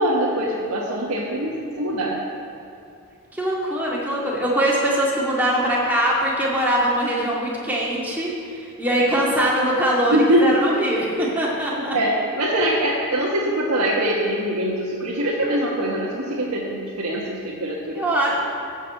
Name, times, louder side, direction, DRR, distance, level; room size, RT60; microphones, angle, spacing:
voice 1, 0.0-2.2 10.1-10.6 11.9-18.0, right 1 dB, 90° right, -4 dB, 1.3 m, -23 dB
voice 2, 3.4-12.0 17.9-18.4, right 1 dB, 10° right, -5 dB, 2.0 m, -22 dB
13.5 x 5.4 x 7.8 m, 2.5 s
head